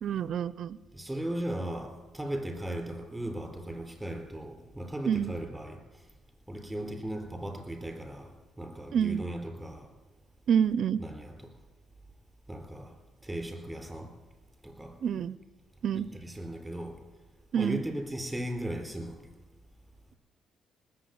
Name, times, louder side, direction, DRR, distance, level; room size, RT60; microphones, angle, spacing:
voice 1, 0.0-0.8 5.1-5.3 8.9-9.2 10.5-11.0 15.0-15.4 15.8-16.1 17.5-17.8, right 8 dB, 65° right, 18 dB, 0.5 m, -27 dB
voice 2, 0.9-5.8 6.5-9.9 11.0-11.5 12.5-12.9 13.2-14.1 14.6-14.9 15.9-16.9 17.5-19.2, right 1 dB, 5° right, 3 dB, 4.1 m, -37 dB
19.5 x 7.5 x 9.4 m, 1.2 s
cardioid pair, 90°, 0 cm